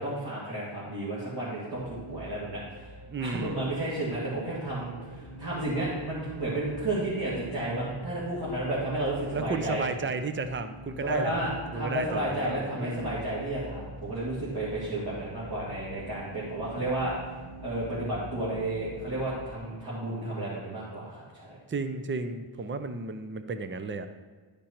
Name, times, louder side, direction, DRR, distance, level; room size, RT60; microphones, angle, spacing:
voice 1, 0.0-2.8 3.2-9.8 11.0-17.1 17.6-21.6, right 1 dB, 50° right, -9 dB, 2.6 m, -32 dB
sound 1, 1.7-19.5, equal, 75° right, 1.4 m, -44 dB
voice 2, 3.1-3.6 9.3-13.3 21.7-24.1, right 3 dB, 25° right, 9 dB, 0.5 m, -33 dB
11.5 x 5.2 x 4.4 m, 1.3 s
wide cardioid pair, 110°, 49 cm